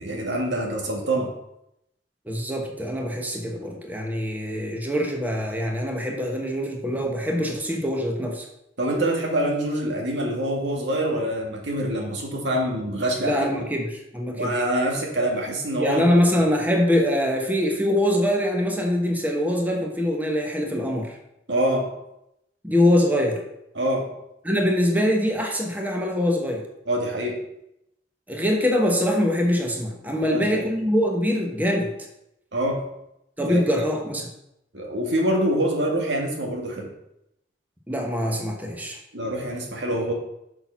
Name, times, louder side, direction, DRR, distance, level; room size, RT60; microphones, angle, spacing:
voice 1, 0.0-1.3 8.8-13.5 14.4-16.1 21.5-21.9 23.8-24.1 26.9-27.4 30.2-30.7 32.5-32.8 33.5-33.9 34.7-36.9 39.1-40.1, right 1 dB, 85° right, 0 dB, 2.0 m, -25 dB
voice 2, 2.3-8.5 13.2-14.5 15.8-21.2 22.6-23.4 24.4-26.7 28.3-31.9 33.4-34.3 37.9-39.0, left 1 dB, 10° right, 1 dB, 1.1 m, -23 dB
6.7 x 6.0 x 5.7 m, 0.82 s
head